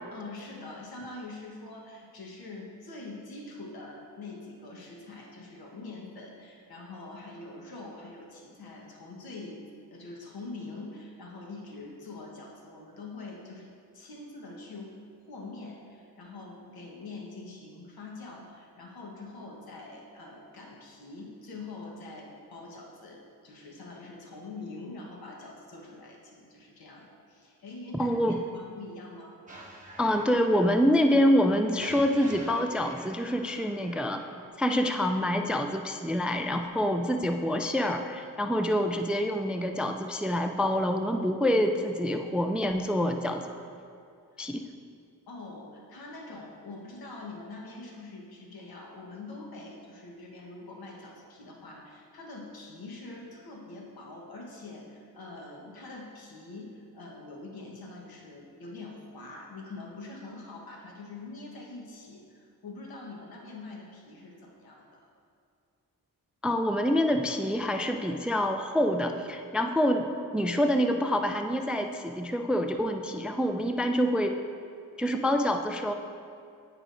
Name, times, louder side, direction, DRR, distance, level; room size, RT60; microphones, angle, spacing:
voice 1, 0.1-9.6 9.9-13.7 13.9-15.0 15.3-29.4 45.3-65.1, left 2 dB, 75° left, -1 dB, 1.2 m, -44 dB
voice 2, 28.0-28.4 30.0-34.2 34.6-43.4 44.4-44.6 66.4-74.4 75.0-75.9, equal, 5° right, 6 dB, 0.3 m, -26 dB
sound 1, 29.5-34.5, right 1 dB, 20° right, 1.2 m, -48 dB
9.9 x 4.9 x 2.5 m, 2.4 s
cardioid pair, 50°, 37 cm